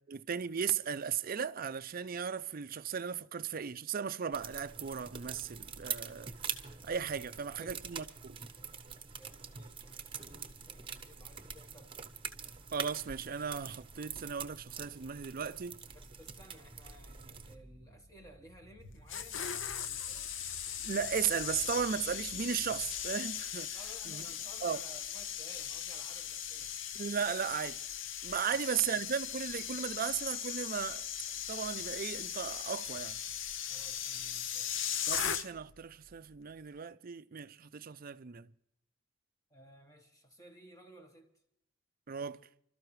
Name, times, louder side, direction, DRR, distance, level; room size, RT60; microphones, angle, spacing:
voice 1, 0.1-6.3 6.8-8.3 12.7-15.8 20.8-23.8 24.1-24.2 24.6-24.8 26.9-27.8 28.2-31.1 31.5-33.2 35.1-38.5 42.1-42.4, right 7 dB, 45° right, 0.5 m, -36 dB
sound 1, 4.3-17.6, right 7 dB, 25° right, 0.9 m, -45 dB
voice 2, 7.6-8.1 9.2-11.9 15.9-20.4 23.7-26.7 28.5-28.6 33.7-34.7 39.5-41.3, equal, 15° left, 1.4 m, -57 dB
sound 2, 15.8-23.1, right 1 dB, 40° left, 5.9 m, -57 dB
sound 3, 18.8-35.8 36.0-36.3, left 9 dB, 70° left, 0.8 m, -39 dB
30.0 x 13.0 x 3.2 m
head